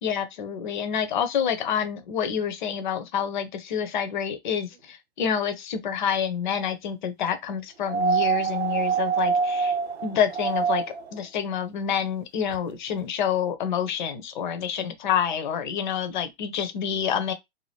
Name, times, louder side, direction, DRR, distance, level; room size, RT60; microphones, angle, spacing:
voice 1, 0.0-9.8 10.0-10.8 11.1-17.3, left 8 dB, 45° left, 0.8 m, -28 dB
sound 1, 7.9-11.1 12.5-12.6, right 6 dB, 90° right, 0.5 m, -25 dB
2.7 x 2.4 x 3.3 m
hypercardioid pair, 130°, 32 cm